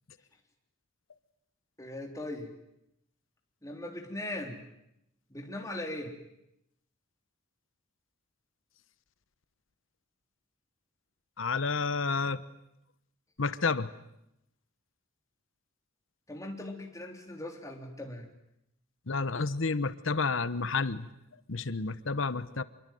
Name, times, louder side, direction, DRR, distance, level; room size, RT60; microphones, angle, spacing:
voice 1, 1.8-2.5 3.6-4.6 5.3-6.2 16.3-18.3, left 1 dB, 15° left, 2 dB, 3.6 m, -39 dB
voice 2, 11.4-12.4 13.4-13.9 19.1-21.1 21.5-22.6, left 4 dB, 65° left, 14 dB, 1.0 m, -30 dB
27.0 x 22.5 x 9.3 m, 0.82 s
head